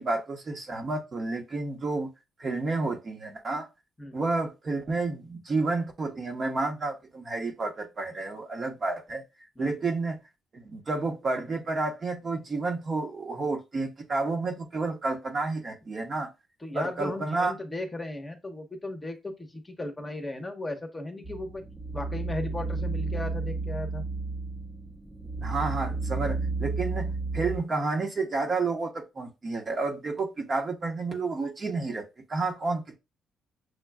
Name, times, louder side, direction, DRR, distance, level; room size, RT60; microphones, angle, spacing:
voice 1, 0.0-2.1 2.4-3.7 4.1-9.2 9.6-10.2 10.5-16.3 16.7-17.5 25.4-33.0, right 3 dB, 40° right, 0.9 m, -30 dB
voice 2, 16.6-21.6 21.9-24.0, left 2 dB, 15° left, 0.9 m, -36 dB
sound 1, 21.2-27.6, right 3 dB, 15° right, 0.8 m, -32 dB
6.4 x 2.2 x 2.3 m
cardioid pair, 90°, 0 cm